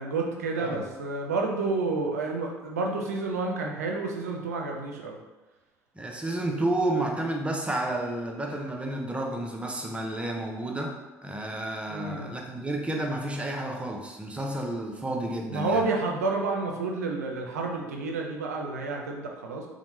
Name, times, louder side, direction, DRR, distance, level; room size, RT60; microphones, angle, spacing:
voice 1, 0.0-5.2 11.9-12.4 15.5-19.7, right 3 dB, 85° right, 1 dB, 0.4 m, -30 dB
voice 2, 6.0-15.8, right 1 dB, 15° right, 1 dB, 0.5 m, -31 dB
3.0 x 2.1 x 3.0 m, 1.1 s
hypercardioid pair, 60°, 8 cm